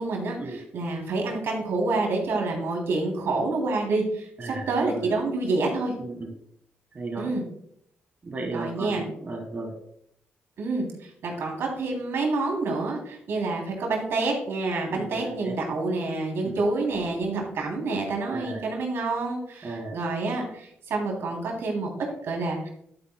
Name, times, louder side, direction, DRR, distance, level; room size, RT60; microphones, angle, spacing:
voice 1, 0.0-0.4 0.7-5.9 7.2-7.4 8.5-9.0 10.6-10.8 11.2-22.7, right 3 dB, 70° right, 0 dB, 3.0 m, -28 dB
voice 2, 4.4-5.0 6.0-6.3 6.9-7.3 8.2-9.8 14.9-15.6 16.4-16.6 18.3-18.7 19.6-20.0, right 2 dB, 40° right, 2 dB, 1.6 m, -35 dB
12.0 x 8.7 x 2.2 m, 0.72 s
cardioid pair, 75°, 4 cm